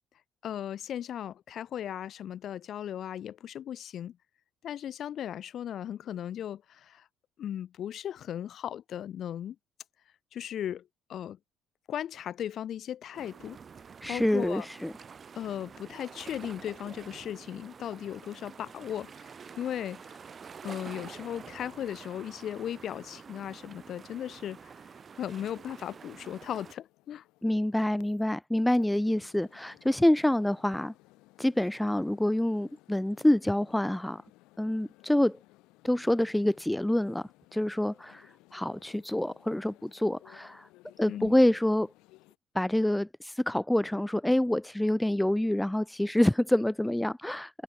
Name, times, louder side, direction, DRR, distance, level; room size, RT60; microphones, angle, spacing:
voice 1, 0.4-4.2 4.6-7.1 7.4-9.6 10.3-11.4 11.9-13.6 14.1-14.6 15.3-20.2 20.6-24.7 25.2-27.2 41.1-41.4, left 10 dB, 60° left, 1.3 m, -37 dB
sound 1, 13.1-26.7, right 6 dB, 40° right, 1.3 m, -48 dB
voice 2, 14.0-14.9 27.4-30.9 31.4-34.2 34.6-35.4 35.8-40.7 41.0-41.9 42.5-47.6, left 1 dB, 5° left, 0.3 m, -27 dB
sound 2, 25.5-28.2 29.0-42.4, left 20 dB, 85° left, 2.4 m, -60 dB
supercardioid pair, 80°, 0 cm